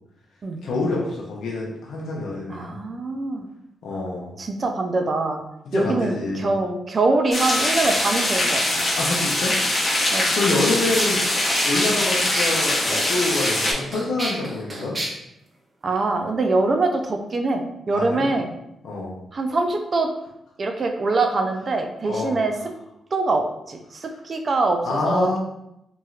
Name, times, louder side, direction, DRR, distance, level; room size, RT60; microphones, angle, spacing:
voice 1, 0.6-2.8 3.8-4.3 5.7-6.5 9.0-9.6 9.9-11.2 11.6-15.0 17.9-18.3 18.8-19.2 22.1-22.4 24.8-25.4, left 2 dB, 75° left, -3 dB, 0.6 m, -26 dB
voice 2, 2.5-3.5 4.4-5.4 5.7-8.6 10.1-10.4 15.8-18.5 19.3-20.1 20.6-22.5 23.1-25.4, right 3 dB, 50° right, 5 dB, 0.4 m, -23 dB
sound 1, 7.3-13.7, left 1 dB, 35° left, 0.8 m, -22 dB
sound 2, 10.5-10.6 10.9-15.1, right 1 dB, 35° right, 0.9 m, -30 dB
3.0 x 2.7 x 2.4 m, 0.84 s
supercardioid pair, 50°, 0 cm